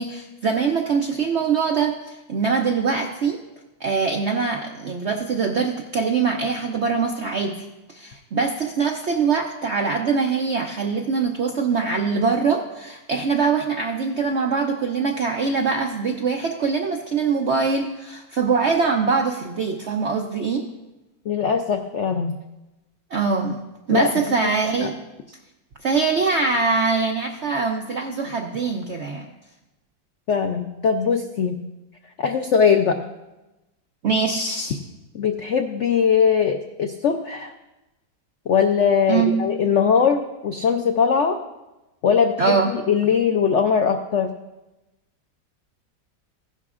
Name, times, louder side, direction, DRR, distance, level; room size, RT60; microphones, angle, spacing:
voice 1, 0.0-3.4 3.8-20.6 23.1-23.6 23.9-24.9 25.8-29.3 34.0-34.8 39.1-39.5 42.4-42.7, right 5 dB, 60° right, 3 dB, 0.7 m, -23 dB
voice 2, 21.3-22.4 23.9-24.1 24.4-24.5 24.8-24.9 30.3-31.6 32.2-33.0 35.1-37.5 38.5-41.4 42.0-44.3, left 6 dB, 75° left, 5 dB, 0.6 m, -20 dB
16.0 x 11.0 x 2.4 m, 1.0 s
omnidirectional pair, 1.9 m